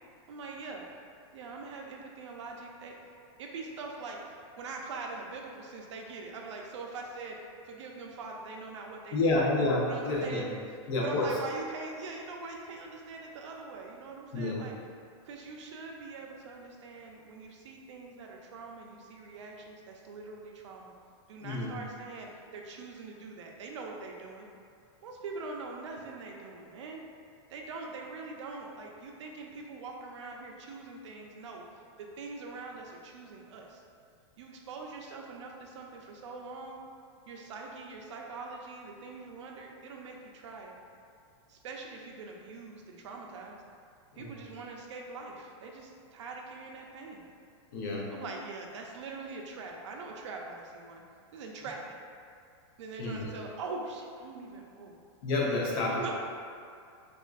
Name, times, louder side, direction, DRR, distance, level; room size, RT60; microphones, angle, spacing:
voice 1, 0.3-0.8 1.3-3.0 3.4-7.4 7.7-9.4 9.8-10.5 11.0-14.7 15.2-20.9 21.3-24.5 25.0-27.0 27.5-31.6 32.0-33.8 34.4-36.8 37.3-40.7 41.5-43.6 44.1-47.2 48.1-51.0 51.3-52.0 52.8-55.0 55.6-56.1, right 3 dB, 75° right, 0 dB, 0.5 m, -43 dB
voice 2, 9.1-10.6 10.9-11.4 14.3-14.6 21.4-21.8 44.1-44.4 47.7-48.1 53.0-53.2 55.2-56.1, left 2 dB, 45° left, -3 dB, 0.7 m, -29 dB
4.3 x 2.4 x 2.4 m, 2.3 s
supercardioid pair, 160°, 15 cm